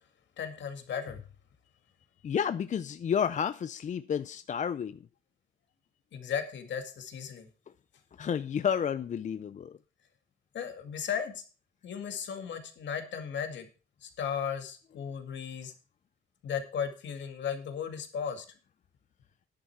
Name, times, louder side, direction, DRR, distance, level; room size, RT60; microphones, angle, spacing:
voice 1, 0.4-1.2 6.1-7.5 10.5-11.4 11.8-13.7 14.0-15.7 16.4-18.5, left 7 dB, 65° left, 2.1 m, -35 dB
voice 2, 2.2-5.0 8.2-9.7, left 7 dB, 40° left, 0.5 m, -31 dB
10.5 x 9.1 x 4.6 m
cardioid pair, 90°, 20 cm